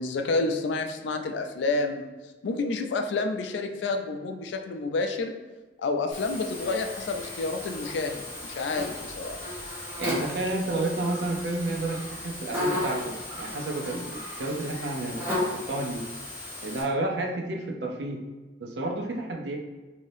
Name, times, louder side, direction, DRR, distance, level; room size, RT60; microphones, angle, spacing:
voice 1, 0.0-2.1 2.4-5.3 5.8-9.4, left 3 dB, 80° left, 6 dB, 0.4 m, -29 dB
Buzz, 6.1-16.8, left 1 dB, 15° right, 1.1 m, -35 dB
voice 2, 10.0-16.0 16.6-18.2 18.6-19.6, right 2 dB, 70° right, 1 dB, 0.5 m, -31 dB
3.3 x 2.7 x 2.6 m, 1.2 s
head